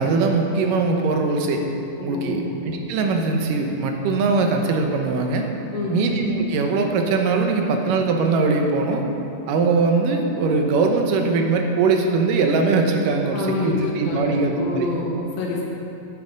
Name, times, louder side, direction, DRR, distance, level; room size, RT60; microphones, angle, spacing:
voice 1, 0.0-1.6 2.0-5.5 5.9-9.0 9.5-14.9, right 3 dB, 75° right, 3 dB, 2.4 m, -21 dB
voice 2, 2.0-2.5 5.7-6.0 13.3-15.6, left 3 dB, 80° left, -2 dB, 3.1 m, -27 dB
11.0 x 8.4 x 5.2 m, 2.9 s
omnidirectional pair, 4.1 m